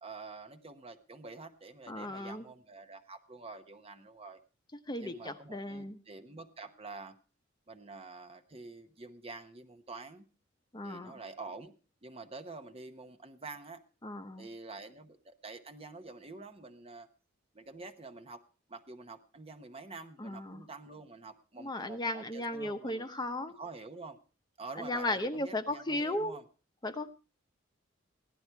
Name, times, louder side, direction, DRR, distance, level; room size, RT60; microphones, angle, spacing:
voice 1, 0.0-4.4 5.0-7.2 7.7-10.3 10.8-11.7 12.0-13.8 14.4-17.1 17.5-18.4 18.7-23.1 23.5-24.2 24.6-26.4, right 3 dB, 30° right, 9 dB, 0.9 m, -47 dB
voice 2, 1.9-2.4 4.9-6.0 10.7-11.1 14.0-14.5 20.2-20.6 21.6-23.6 24.8-26.4 26.8-27.1, left 1 dB, 20° left, 8 dB, 0.9 m, -35 dB
15.5 x 11.5 x 4.6 m, 0.35 s
head